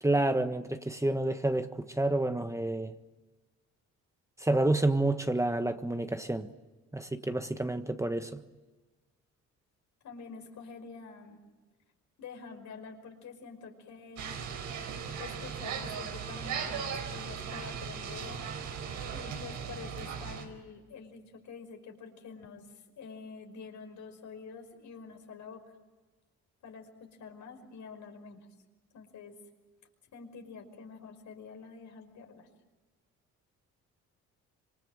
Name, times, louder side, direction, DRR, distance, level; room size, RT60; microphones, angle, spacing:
voice 1, 0.0-2.9 4.4-6.5 6.9-8.4, right 2 dB, 10° right, 8 dB, 1.4 m, -29 dB
voice 2, 10.0-11.4 12.2-14.3 15.2-18.4 19.1-22.7 23.0-25.6 26.6-28.5 28.9-29.4 30.1-32.5, left 5 dB, 70° left, 5 dB, 5.4 m, -47 dB
sound 1, 14.2-20.4, right 7 dB, 85° right, 4.8 m, -38 dB
26.5 x 25.0 x 7.8 m, 1.2 s
cardioid pair, 90°, 30 cm